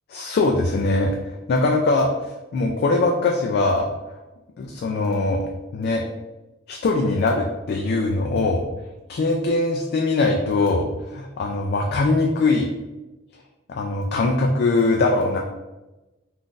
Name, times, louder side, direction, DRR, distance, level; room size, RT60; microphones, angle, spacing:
voice 1, 0.1-1.1 1.5-3.9 4.6-5.4 5.7-6.0 6.7-8.6 9.1-12.7 13.7-15.4, left 3 dB, 55° left, 1 dB, 0.3 m, -21 dB
2.5 x 2.4 x 3.7 m, 1.1 s
head